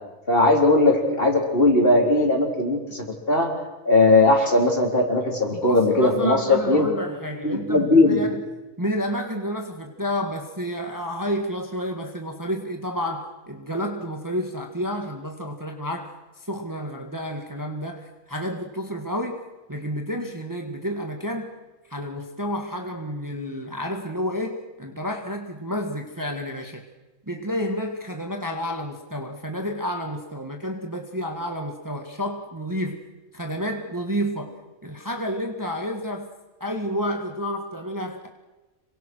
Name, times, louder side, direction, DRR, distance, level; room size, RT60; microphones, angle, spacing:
voice 1, 0.3-3.5 3.8-6.9 7.4-8.2, left 2 dB, 40° left, 1 dB, 4.2 m, -19 dB
voice 2, 5.5-8.4 8.8-19.4 19.7-21.5 21.9-26.8 27.3-33.0 33.3-36.3 36.6-38.3, equal, 15° right, 3 dB, 1.8 m, -30 dB
27.0 x 23.5 x 6.3 m, 1.1 s
omnidirectional pair, 1.5 m